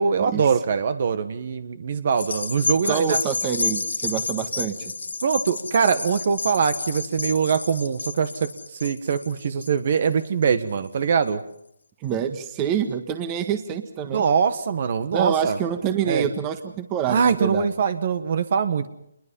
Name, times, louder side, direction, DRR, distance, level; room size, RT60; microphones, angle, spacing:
voice 1, 0.0-3.2 5.2-11.4 14.1-15.6 16.0-16.3 17.1-18.9, right 6 dB, 45° right, 12 dB, 1.6 m, -23 dB
sound 1, 2.1-10.8 11.3-11.4, left 3 dB, 80° left, 1.9 m, -30 dB
voice 2, 2.8-4.9 12.0-14.2 15.1-17.6, right 8 dB, 20° right, 9 dB, 1.6 m, -26 dB
27.5 x 21.5 x 5.6 m, 0.77 s
figure-of-eight pair, 155°, 0 cm